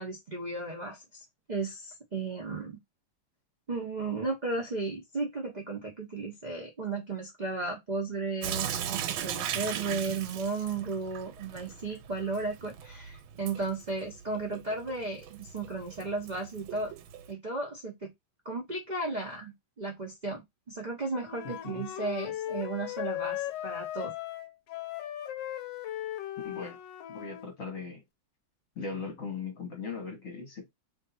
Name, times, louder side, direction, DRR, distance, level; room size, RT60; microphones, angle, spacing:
voice 1, 0.0-2.8 3.7-16.9 17.3-18.1 18.4-24.1, right 3 dB, 55° right, 0.5 m, -35 dB
Sink (filling or washing) / Drip, 8.4-17.3, right 9 dB, 85° right, 1.4 m, -38 dB
Wind instrument woodwind instrument, 21.2-27.5, left 13 dB, 75° left, 1.2 m, -37 dB
voice 2, 21.4-21.9 26.4-26.8 27.1-28.0 28.7-30.7, left 4 dB, 45° left, 1.4 m, -39 dB
3.2 x 2.7 x 4.0 m
omnidirectional pair, 2.2 m